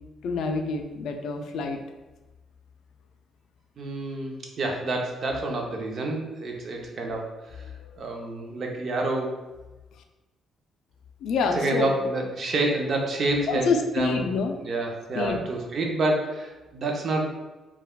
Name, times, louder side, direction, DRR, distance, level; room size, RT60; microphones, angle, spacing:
voice 1, 0.2-1.8 7.8-7.9 11.2-11.9 13.5-14.6 15.2-15.4, left 4 dB, 75° left, 5 dB, 0.3 m, -27 dB
voice 2, 3.8-7.6 8.0-9.4 11.5-13.7 13.9-14.3 14.6-17.3, right 2 dB, 55° right, 1 dB, 0.6 m, -28 dB
3.4 x 2.3 x 2.3 m, 1.1 s
cardioid pair, 90°, 0 cm